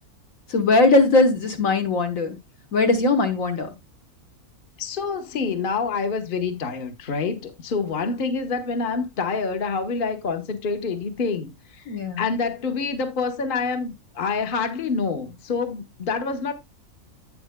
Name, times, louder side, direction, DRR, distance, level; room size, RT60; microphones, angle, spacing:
voice 1, 0.5-2.4 2.7-3.7 11.9-12.3, left 3 dB, 65° left, 1.7 m, -20 dB
voice 2, 4.8-11.8 12.2-16.5, left 4 dB, 40° left, 1.2 m, -27 dB
10.5 x 8.6 x 2.2 m
omnidirectional pair, 1.5 m